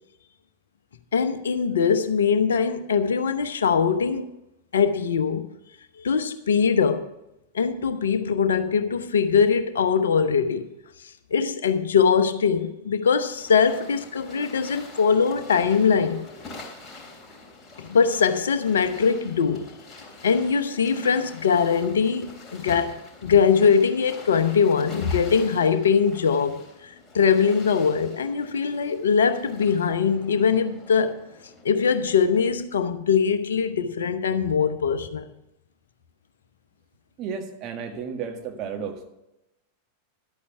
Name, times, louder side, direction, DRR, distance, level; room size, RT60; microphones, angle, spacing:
voice 1, 1.1-4.3 4.7-5.5 6.0-7.1 7.5-10.7 11.3-16.3 17.9-19.7 20.2-31.2 31.6-35.3, left 6 dB, 65° left, 0.8 m, -22 dB
sound 1, 13.4-32.5, left 3 dB, 15° left, 3.4 m, -46 dB
voice 2, 37.2-39.1, right 6 dB, 35° right, 1.6 m, -33 dB
11.5 x 8.6 x 5.7 m
figure-of-eight pair, 90°, 0 cm